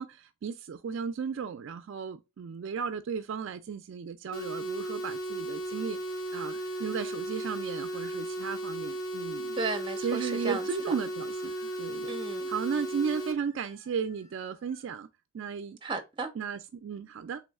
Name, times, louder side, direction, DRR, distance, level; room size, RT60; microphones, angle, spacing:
voice 1, 0.0-6.0 6.3-9.6 10.0-12.1 12.5-15.1 15.3-15.8 16.4-17.4, right 6 dB, 60° right, 0.3 m, -35 dB
sound 1, 4.3-13.3, right 1 dB, 85° left, 0.8 m, -35 dB
sound 2, 6.0-8.3 9.7-11.9 12.8-14.9, right 1 dB, 30° left, 1.9 m, -58 dB
voice 2, 9.6-10.9 12.1-12.5 15.8-16.3, right 3 dB, 25° right, 0.6 m, -34 dB
3.4 x 3.1 x 3.4 m
head